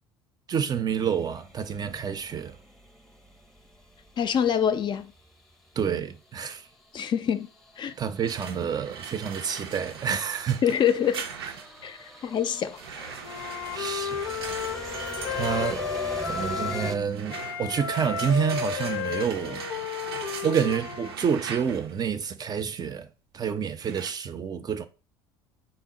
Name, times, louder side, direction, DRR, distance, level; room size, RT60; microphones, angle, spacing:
voice 1, 0.5-2.6 5.8-6.7 8.0-10.6 13.7-14.2 15.3-15.9 16.2-19.7 20.2-24.9, right 7 dB, 30° right, 0.5 m, -28 dB
sound 1, 0.9-5.3 6.8-17.0, equal, ahead, 0.7 m, -43 dB
voice 2, 4.2-5.1 6.9-7.5 7.8-7.9 10.6-11.3 11.8-12.0 12.2-13.1, left 8 dB, 40° left, 0.4 m, -25 dB
sound 2, 8.2-11.9 12.8-22.0 23.8-24.1, right 6 dB, 85° right, 0.5 m, -40 dB
Wind instrument woodwind instrument, 13.2-17.0 17.3-21.2, left 7 dB, 80° left, 0.6 m, -33 dB
3.9 x 2.1 x 3.7 m
hypercardioid pair, 70°, 13 cm